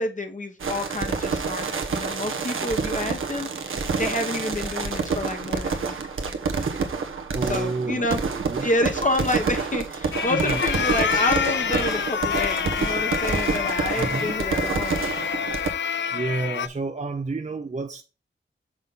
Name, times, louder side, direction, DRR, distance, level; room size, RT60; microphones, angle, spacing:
voice 1, 0.0-6.0 7.5-8.2 8.6-15.0, left 1 dB, 40° left, 1.1 m, -28 dB
sound 1, 0.6-15.7, right 4 dB, 85° right, 1.0 m, -28 dB
voice 2, 7.3-8.0 8.3-8.7 10.3-10.6 14.0-14.3 15.5-15.7 16.1-18.0, right 3 dB, 35° right, 0.7 m, -30 dB
sound 2, 10.1-16.7, left 7 dB, 65° left, 0.5 m, -27 dB
6.3 x 3.7 x 5.5 m
cardioid pair, 50°, 20 cm